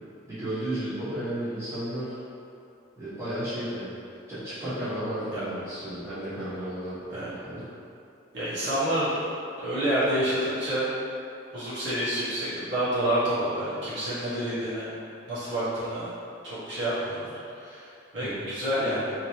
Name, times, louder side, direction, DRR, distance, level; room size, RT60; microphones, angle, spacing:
voice 1, 0.3-2.2 3.0-3.9 4.3-7.6 18.2-18.5, right 1 dB, 15° right, -14 dB, 1.2 m, -33 dB
voice 2, 8.3-9.2 9.6-10.9 11.5-14.9 15.3-16.1 16.4-19.1, right 1 dB, 80° right, -12 dB, 1.2 m, -28 dB
3.1 x 2.8 x 2.8 m, 2.6 s
head